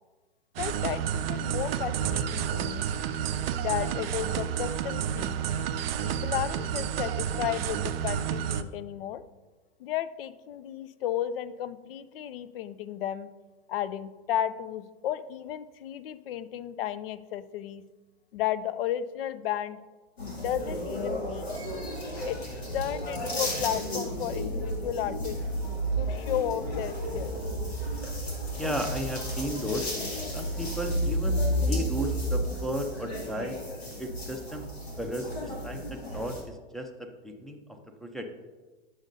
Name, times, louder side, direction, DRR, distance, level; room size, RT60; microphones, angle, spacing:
voice 1, 0.6-2.9 3.6-5.4 6.0-9.2 9.8-13.3 13.7-17.8 18.3-19.8 20.2-21.5 22.3-22.4 22.7-25.4 26.0-27.4, left 11 dB, 65° left, 15 dB, 0.5 m, -33 dB
sound 1, 0.6-8.6, right 9 dB, 70° right, 0.5 m, -30 dB
sound 2, 20.2-36.4, equal, 80° left, 2.3 m, -32 dB
voice 2, 28.6-29.9 30.3-33.6 34.0-34.7 35.0-38.3, equal, ahead, 4 dB, 0.5 m, -34 dB
8.9 x 6.3 x 2.6 m, 1.2 s
hypercardioid pair, 115°, 31 cm